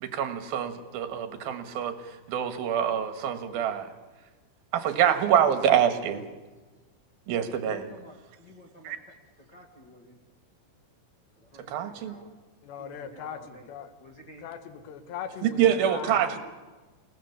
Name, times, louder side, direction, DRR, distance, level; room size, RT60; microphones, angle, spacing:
voice 1, 0.0-1.9 2.3-3.9 4.7-6.2 7.3-7.9 8.8-9.0 11.7-12.1 15.4-16.4, right 9 dB, 60° right, 9 dB, 2.9 m, -25 dB
voice 2, 7.6-8.9 9.5-10.2 11.4-12.3 12.8-13.7 14.0-14.4, equal, 50° left, 2 dB, 1.2 m, -51 dB
voice 3, 12.6-13.9 14.4-16.4, left 8 dB, 70° left, 10 dB, 3.7 m, -40 dB
29.0 x 18.5 x 7.2 m, 1.2 s
omnidirectional pair, 5.5 m